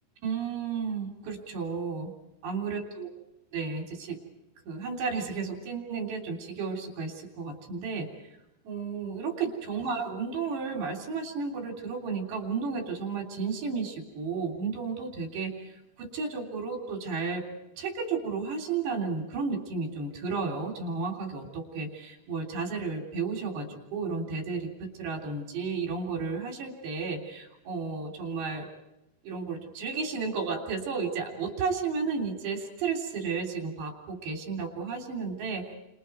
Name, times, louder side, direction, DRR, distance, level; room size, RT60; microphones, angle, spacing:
voice 1, 0.2-2.1 2.4-3.1 3.5-4.2 4.7-8.1 8.7-15.5 16.0-17.5 17.8-28.7 29.2-35.8, right 5 dB, 85° right, 2 dB, 5.6 m, -33 dB
29.5 x 28.0 x 4.6 m, 0.88 s
omnidirectional pair, 4.8 m